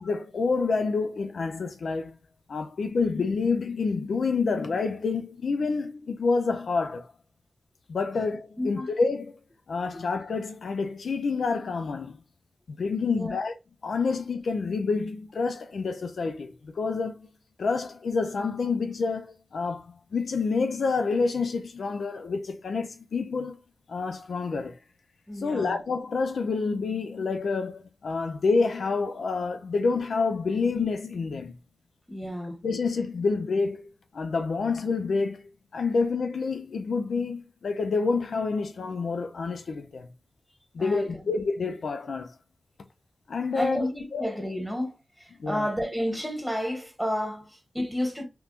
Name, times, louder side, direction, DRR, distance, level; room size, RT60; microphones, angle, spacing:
voice 1, 0.0-2.2 2.5-7.1 7.9-9.4 9.7-12.2 12.7-13.5 13.8-17.3 17.6-23.6 23.9-24.8 25.4-31.5 32.6-33.9 34.1-35.4 35.7-40.1 40.7-42.3 43.3-43.9 44.1-44.3 45.4-45.6, left 4 dB, 80° left, 0.4 m, -28 dB
voice 2, 8.6-8.9 9.9-10.0 13.0-13.4 25.3-25.8 32.1-32.6 40.8-41.3 43.5-48.2, equal, ahead, 1.5 m, -31 dB
3.4 x 3.0 x 2.4 m
cardioid pair, 55°, 0 cm